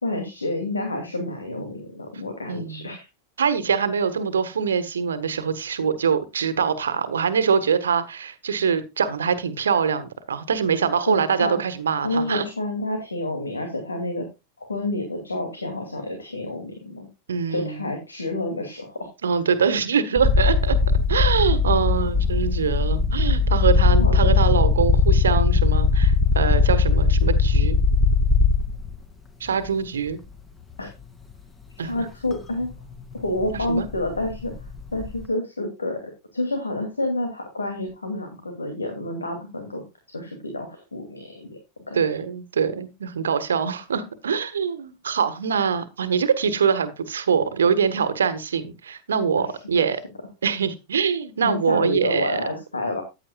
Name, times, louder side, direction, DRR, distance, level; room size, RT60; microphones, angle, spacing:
voice 1, 0.0-3.1 11.1-11.6 12.0-14.3 14.6-17.1 17.5-19.1 21.9-22.0 24.0-24.4 30.8-30.9 31.8-32.7 33.1-34.5 34.9-39.8 40.1-41.6 41.9-42.0 49.8-49.9 51.4-53.0, left 2 dB, 75° left, 5 dB, 2.5 m, -29 dB
voice 2, 2.5-2.9 3.4-12.5 17.3-17.8 19.2-20.8 21.1-27.8 29.4-30.2 31.8-32.0 33.5-33.9 41.9-50.0 50.4-52.4, right 6 dB, 70° right, 12 dB, 1.4 m, -24 dB
sound 1, 20.2-28.9 30.1-30.2 32.3-32.4 32.6-35.2, left 4 dB, 15° left, 2.3 m, -19 dB
14.5 x 9.7 x 2.3 m, 0.24 s
figure-of-eight pair, 90°, 0 cm